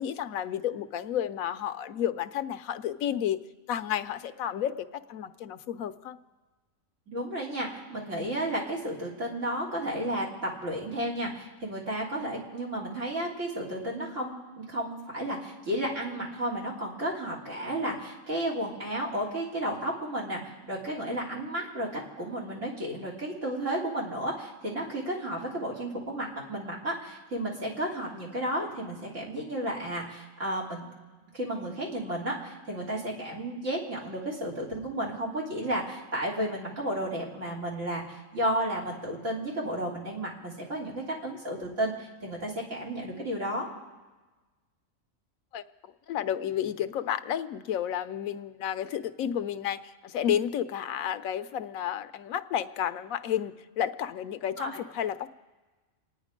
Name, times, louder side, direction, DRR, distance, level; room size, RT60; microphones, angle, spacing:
voice 1, 0.0-3.4 3.7-6.2 45.5-45.6 46.1-55.3, left 10 dB, 80° left, 12 dB, 1.1 m, -31 dB
voice 2, 7.1-30.9 31.3-43.7 54.6-54.7, right 1 dB, 65° right, -2 dB, 3.7 m, -33 dB
28.5 x 9.7 x 5.1 m, 1.2 s
omnidirectional pair, 1.4 m